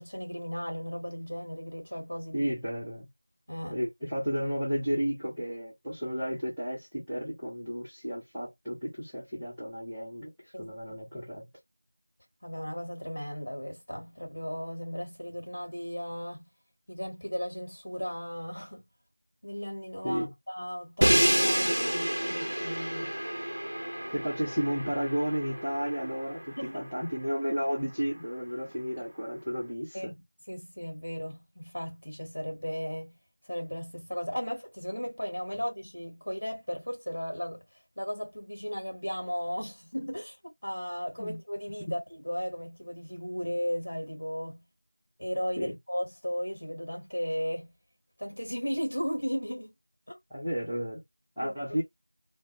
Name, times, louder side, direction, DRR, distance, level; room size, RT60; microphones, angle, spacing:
voice 1, 0.0-2.5 3.5-3.8 10.5-11.0 12.4-16.5 16.9-18.8 19.4-23.2 26.6-26.8 29.9-30.2 30.5-33.2 33.5-37.6 38.0-44.6 45.2-47.7 48.2-49.7 50.1-50.2 51.4-51.5, equal, 50° left, 1.1 m, -36 dB
voice 2, 2.3-3.1 3.7-11.5 20.0-20.3 24.1-30.1 41.2-41.4 41.8-41.9 45.6-45.7 50.3-51.0 51.4-51.8, equal, ahead, 0.4 m, -32 dB
Crash cymbal, 21.0-27.0, equal, 55° right, 0.5 m, -29 dB
2.1 x 2.0 x 2.9 m
figure-of-eight pair, 175°, 0 cm